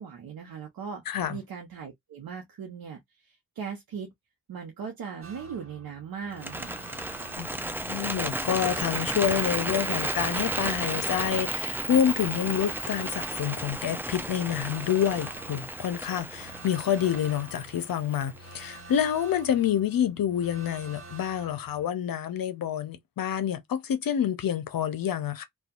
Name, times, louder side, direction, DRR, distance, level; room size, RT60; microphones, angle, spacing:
voice 1, 0.0-1.0 1.3-4.1 4.5-6.7, right 6 dB, 75° right, 0.8 m, -39 dB
voice 2, 1.1-1.4 7.4-25.4, left 9 dB, 70° left, 0.7 m, -28 dB
sound 1, 5.2-21.9, right 2 dB, 40° right, 1.2 m, -48 dB
Bird, 6.3-18.5, right 1 dB, 5° right, 0.5 m, -33 dB
2.6 x 2.3 x 2.4 m
cardioid pair, 55°, 36 cm